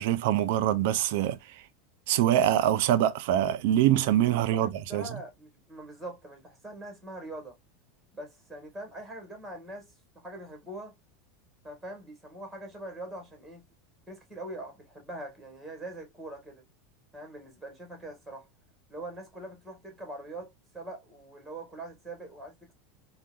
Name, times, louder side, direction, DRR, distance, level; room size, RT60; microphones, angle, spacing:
voice 1, 0.0-1.4 2.1-5.1, right 12 dB, 65° right, 0.4 m, -24 dB
voice 2, 4.3-7.6 8.1-10.9 11.6-13.6 14.1-16.6 17.1-18.5 18.9-22.7, right 1 dB, ahead, 1.3 m, -43 dB
3.7 x 2.1 x 2.3 m
supercardioid pair, 150°, 0 cm